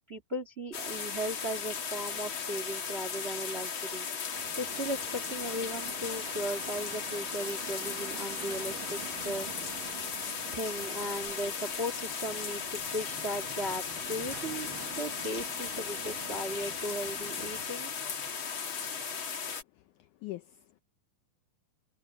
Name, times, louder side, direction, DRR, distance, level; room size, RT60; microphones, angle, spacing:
voice 1, 0.1-4.0 4.6-9.0 9.2-9.5 10.5-14.7 15.0-17.9, equal, 30° right, 1.1 m, -37 dB
sound 1, 0.7-19.6, left 6 dB, 40° left, 2.3 m, -37 dB
sound 2, 4.3-17.7, right 11 dB, 70° right, 3.0 m, -48 dB
voice 2, 19.7-20.8, left 18 dB, 80° left, 1.9 m, -44 dB
omnidirectional pair, 4.1 m